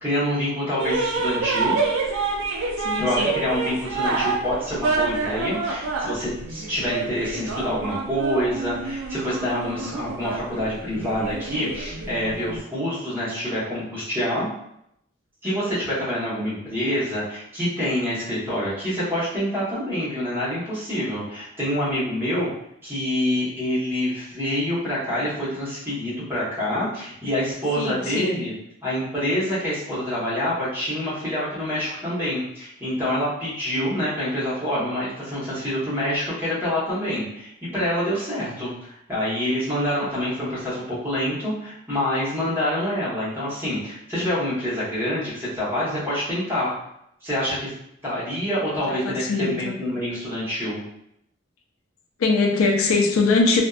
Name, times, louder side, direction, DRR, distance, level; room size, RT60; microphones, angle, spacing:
voice 1, 0.0-1.8 3.0-14.5 15.4-22.5 22.8-28.5 28.8-46.7 47.2-47.7 48.0-50.8, equal, 10° right, -10 dB, 0.9 m, -26 dB
sound 1, 0.8-12.6, right 3 dB, 85° right, 0.4 m, -27 dB
voice 2, 2.8-3.4 27.8-28.4 48.9-49.8 52.2-53.6, left 3 dB, 90° left, 1 dB, 0.4 m, -22 dB
2.5 x 2.1 x 2.3 m, 0.78 s
head